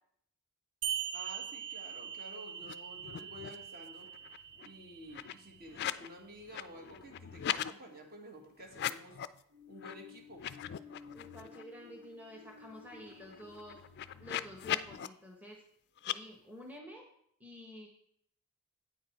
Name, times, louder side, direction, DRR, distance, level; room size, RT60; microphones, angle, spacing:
sound 1, 0.8-5.8, right 9 dB, 60° right, 0.8 m, -42 dB
voice 1, 1.1-4.1 4.6-9.2 9.7-10.4, equal, 45° right, 2 dB, 1.6 m, -51 dB
sound 2, 2.6-3.7 4.0-6.1 6.4-7.7 8.7-9.4 9.8-9.9 10.3-11.6 12.0-12.1 12.4-15.1 16.0-16.2, left 11 dB, 50° left, 0.3 m, -40 dB
sound 3, 9.5-15.2, left 5 dB, 85° right, 4.0 m, -56 dB
voice 2, 11.1-13.8 14.2-15.6 16.0-17.0 17.4-17.9, equal, 5° right, 0 dB, 1.0 m, -50 dB
8.6 x 6.7 x 4.5 m, 0.70 s
head